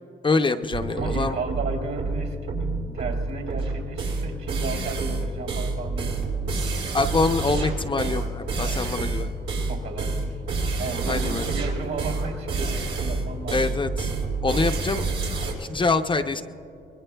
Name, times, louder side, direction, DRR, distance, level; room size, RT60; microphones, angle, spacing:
voice 1, 0.2-1.4 6.9-9.3 11.1-11.5 13.5-14.1 14.4-15.1 15.6-16.4, left 3 dB, 25° left, 6 dB, 0.6 m, -25 dB
sound 1, 0.7-15.5, right 3 dB, 90° right, 4.0 m, -28 dB
voice 2, 0.9-2.7 2.9-6.3 9.7-10.4 10.8-13.9, right 4 dB, 70° right, 1 dB, 3.1 m, -34 dB
25.0 x 20.5 x 2.3 m, 2.7 s
cardioid pair, 90°, 20 cm